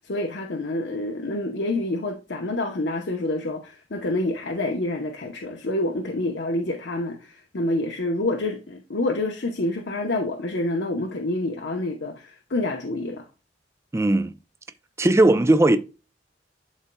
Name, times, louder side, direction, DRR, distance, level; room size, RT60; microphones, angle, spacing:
voice 1, 0.0-13.3, left 2 dB, 80° left, 0.8 m, -27 dB
voice 2, 13.9-14.3 15.0-15.8, right 2 dB, 15° right, 0.4 m, -18 dB
11.5 x 4.2 x 2.2 m
head